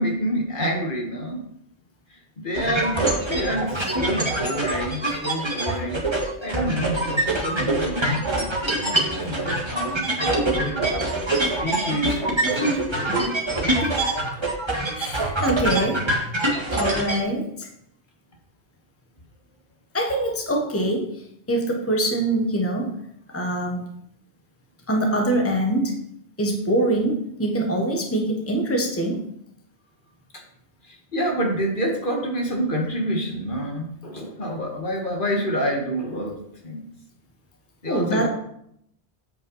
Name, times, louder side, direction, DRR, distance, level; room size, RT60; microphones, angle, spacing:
voice 1, 0.0-1.4 2.1-6.0 6.4-11.0 11.4-13.3 30.3-30.4 30.8-36.9 37.8-38.3, equal, 50° left, 1 dB, 1.6 m, -28 dB
sound 1, 2.5-17.2, right 2 dB, 25° right, 1.6 m, -24 dB
voice 2, 14.9-16.0 16.7-17.7 19.9-21.2 21.5-22.9 23.3-23.9 24.9-26.0 26.4-29.2 37.9-38.3, right 1 dB, 15° left, 1 dB, 1.2 m, -24 dB
8.2 x 5.5 x 5.5 m, 0.73 s
omnidirectional pair, 1.1 m